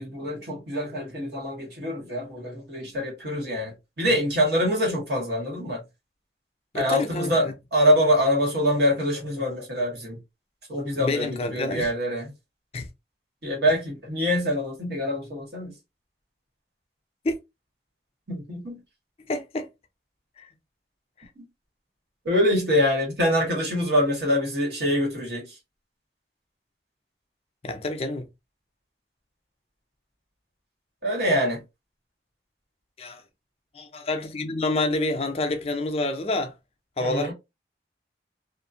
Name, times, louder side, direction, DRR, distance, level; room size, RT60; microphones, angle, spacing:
voice 1, 0.0-5.8 6.7-10.2 10.7-12.3 13.4-15.7 18.3-18.8 21.4-21.5 22.2-25.6 31.0-31.6 37.0-37.3, equal, 70° right, 1.5 m, -25 dB
voice 2, 6.7-7.5 11.0-11.9 12.7-12.9 17.2-17.4 19.3-19.7 20.4-20.5 21.2-21.3 27.6-28.3 33.0-33.2 33.7-36.5 37.0-37.3, left 2 dB, 35° left, 0.4 m, -28 dB
2.5 x 2.5 x 2.6 m
head